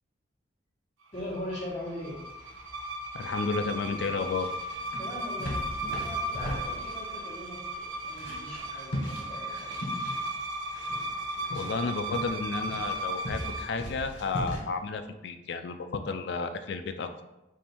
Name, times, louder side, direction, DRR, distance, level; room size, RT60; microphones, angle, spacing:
sound 1, 1.1-14.6, equal, 75° left, 1.3 m, -40 dB
voice 1, 1.1-2.2 5.0-5.6 5.9-9.8, left 1 dB, 30° left, -7 dB, 1.2 m, -40 dB
sound 2, 1.1-13.8, right 1 dB, 85° right, 0.5 m, -36 dB
voice 2, 3.1-4.5 11.5-17.1, left 4 dB, 60° left, 8 dB, 0.3 m, -32 dB
4.3 x 2.6 x 3.5 m, 0.97 s
head